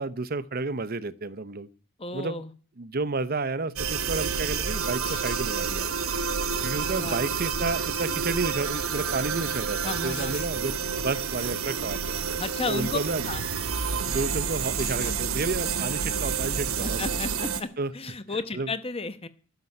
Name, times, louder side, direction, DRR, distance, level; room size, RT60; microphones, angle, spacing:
voice 1, 0.0-1.7 2.1-2.4 2.8-5.9 6.6-12.2 12.7-13.3 13.9-17.2 17.8-17.9 18.5-18.7, right 3 dB, 45° right, 15 dB, 0.7 m, -31 dB
voice 2, 2.0-2.5 6.9-7.2 9.8-10.3 12.4-13.0 13.3-13.5 16.8-19.3, left 3 dB, 25° left, 12 dB, 0.9 m, -33 dB
sound 1, 3.8-17.6, right 6 dB, 75° right, 1.2 m, -29 dB
sound 2, 4.7-4.8 5.0-5.5 7.5-7.7 7.9-8.4 9.1-9.2 10.1-10.5 12.5-12.7 13.0-13.3 14.8-15.2 17.0-17.2 17.5-17.9, left 6 dB, 75° left, 6.6 m, -43 dB
12.0 x 7.0 x 9.8 m, 0.40 s
head